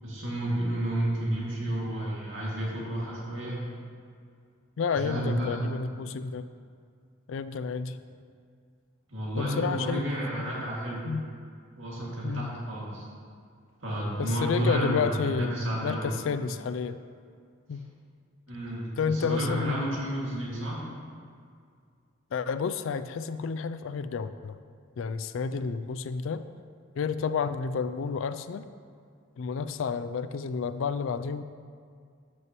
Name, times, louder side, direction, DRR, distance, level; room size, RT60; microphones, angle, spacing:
voice 1, 0.0-3.6 4.9-5.7 9.1-11.0 11.7-13.1 13.8-16.1 17.7-17.8 18.5-20.9, right 1 dB, 60° right, -5 dB, 2.2 m, -31 dB
voice 2, 4.8-6.4 7.3-8.0 9.4-10.1 10.4-10.5 11.0-11.2 12.2-12.5 14.2-17.0 17.7-17.8 19.0-20.0 22.3-24.6 25.0-26.4 27.0-28.7 29.4-31.4, left 5 dB, 60° left, 12 dB, 0.3 m, -30 dB
13.5 x 6.1 x 3.0 m, 2.2 s
head